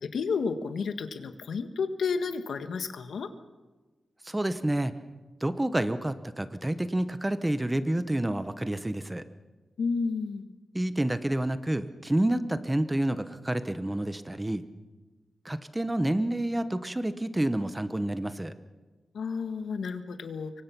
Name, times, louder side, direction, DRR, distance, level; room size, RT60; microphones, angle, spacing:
voice 1, 0.0-3.3 9.8-10.5 19.1-20.6, left 5 dB, 75° left, 8 dB, 1.6 m, -31 dB
voice 2, 4.2-5.0 5.4-9.2 10.7-14.6 15.4-18.5, right 1 dB, 10° right, 11 dB, 0.9 m, -29 dB
26.0 x 24.0 x 6.0 m, 1.2 s
wide cardioid pair, 165°, 0 cm